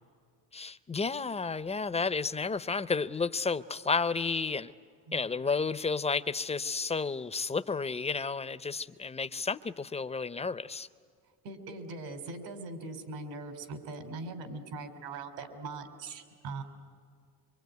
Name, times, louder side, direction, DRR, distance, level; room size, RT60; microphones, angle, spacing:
voice 1, 0.5-4.7 5.1-10.9, left 4 dB, 15° left, 15 dB, 0.6 m, -32 dB
voice 2, 11.4-16.6, right 3 dB, 80° right, 7 dB, 3.7 m, -41 dB
25.0 x 24.5 x 9.4 m, 2.2 s
supercardioid pair, 100°, 45 cm